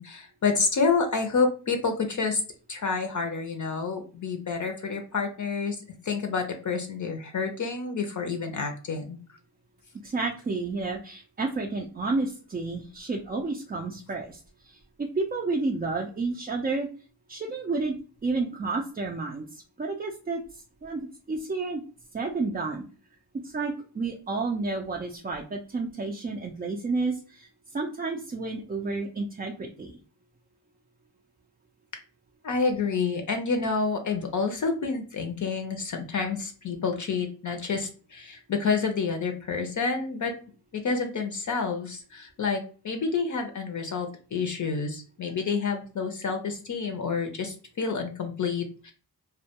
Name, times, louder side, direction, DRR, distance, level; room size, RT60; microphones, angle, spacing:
voice 1, 0.0-2.4 2.7-5.8 6.0-9.2 32.4-40.3 40.8-48.9, left 4 dB, 50° left, 4 dB, 0.5 m, -28 dB
voice 2, 10.0-16.9 17.3-18.0 18.2-21.8 22.1-22.8 23.4-30.0, right 3 dB, 25° right, 0 dB, 0.3 m, -31 dB
2.2 x 2.1 x 2.8 m, 0.38 s
cardioid pair, 65°, 40 cm